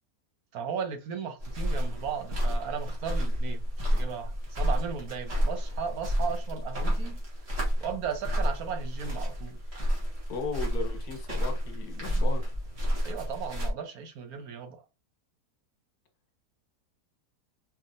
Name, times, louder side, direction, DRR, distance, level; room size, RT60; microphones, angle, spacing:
voice 1, 0.5-7.5 7.8-9.6 13.0-14.9, right 7 dB, 70° right, 1.2 m, -36 dB
sound 1, 1.4-13.7, equal, 40° right, 1.9 m, -30 dB
voice 2, 10.3-12.5, left 4 dB, 75° left, 1.6 m, -36 dB
4.7 x 3.5 x 2.5 m
omnidirectional pair, 1.6 m